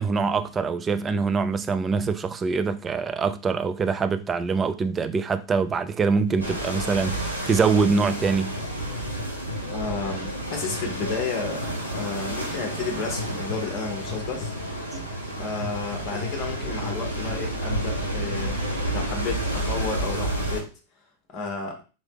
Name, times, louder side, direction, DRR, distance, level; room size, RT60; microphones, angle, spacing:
voice 1, 0.0-8.5 14.9-15.1, right 5 dB, 20° right, 0.4 m, -24 dB
sound 1, 6.3-18.8, left 5 dB, 65° left, 0.8 m, -39 dB
sound 2, 6.4-20.6, right 1 dB, 85° right, 1.1 m, -30 dB
voice 2, 9.6-14.5 15.4-18.6 18.9-20.7 21.3-21.8, left 4 dB, 30° left, 1.1 m, -32 dB
4.1 x 3.2 x 2.9 m
figure-of-eight pair, 90°, 0 cm